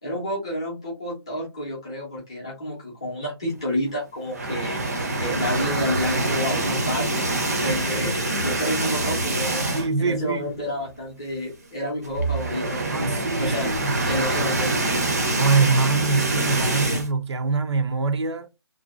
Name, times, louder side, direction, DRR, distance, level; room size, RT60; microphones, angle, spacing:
voice 1, 0.0-13.7 14.0-14.8, left 1 dB, 10° left, 0.5 m, -30 dB
sound 1, 4.3-10.1 10.4-10.6 10.9-11.0 12.0-17.1, right 2 dB, 35° right, 0.5 m, -25 dB
voice 2, 9.7-10.6 12.9-14.1 15.4-18.5, right 4 dB, 90° right, 0.6 m, -24 dB
2.5 x 2.1 x 2.4 m
hypercardioid pair, 180°, 14 cm